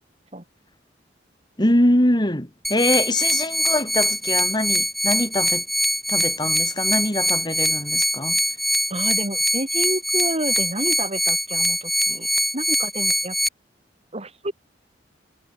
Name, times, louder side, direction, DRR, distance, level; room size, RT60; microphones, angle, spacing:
voice 1, 1.6-5.6 6.1-8.4, left 1 dB, 25° left, 3.4 m, -23 dB
sound 1, 2.6-13.5, equal, ahead, 2.6 m, -23 dB
voice 2, 8.9-12.3 12.5-13.4 14.1-14.5, right 1 dB, 35° right, 4.0 m, -29 dB
head